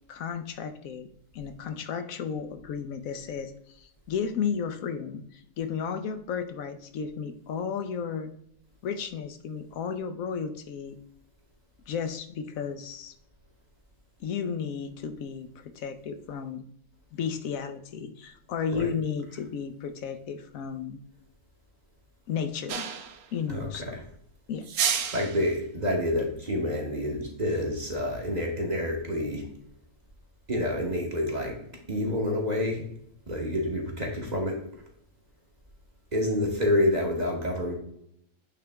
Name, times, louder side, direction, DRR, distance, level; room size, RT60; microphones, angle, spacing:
voice 1, 0.1-1.1 1.3-8.3 8.8-11.0 11.9-13.1 14.2-16.6 17.1-21.0 22.3-22.9 23.3-24.0 24.5-24.7, left 6 dB, 75° left, 8 dB, 1.0 m, -33 dB
sound 1, 22.7-23.3 24.6-25.5, right 8 dB, 80° right, 1.1 m, -29 dB
voice 2, 23.5-24.0 25.1-29.5 30.5-31.6 31.9-32.8 33.3-34.6 36.1-37.7, left 1 dB, 30° right, 0 dB, 1.2 m, -28 dB
8.7 x 3.3 x 3.4 m, 0.71 s
omnidirectional pair, 1.5 m